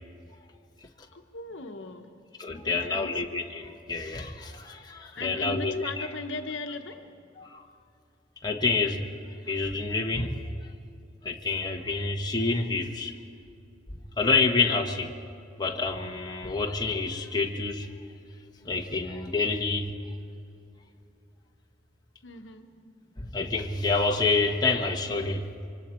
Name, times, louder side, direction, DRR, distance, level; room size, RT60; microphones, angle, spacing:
voice 1, 1.1-2.1 2.5-3.2 5.2-7.2 22.2-22.7, left 2 dB, 70° left, 1.1 m, -38 dB
voice 2, 2.4-6.1 7.4-7.7 8.4-9.1 9.5-10.4 11.2-13.1 14.2-15.1 15.6-17.9 18.6-19.9 23.2-25.4, left 3 dB, 20° left, 1.2 m, -28 dB
27.5 x 24.5 x 4.4 m
head